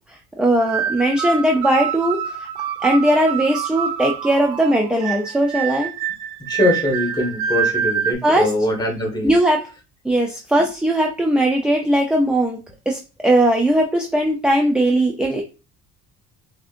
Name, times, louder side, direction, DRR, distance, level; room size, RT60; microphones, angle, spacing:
voice 1, 0.4-2.5 2.8-5.9 8.2-8.5 9.2-9.6 10.0-12.6 12.9-15.4, right 1 dB, 5° right, 2 dB, 0.5 m, -18 dB
sound 1, 0.6-8.1, right 8 dB, 90° right, 0.9 m, -26 dB
voice 2, 6.5-9.4, left 1 dB, 15° left, 0 dB, 1.6 m, -22 dB
6.0 x 2.8 x 2.5 m, 0.32 s
cardioid pair, 130°, 30 cm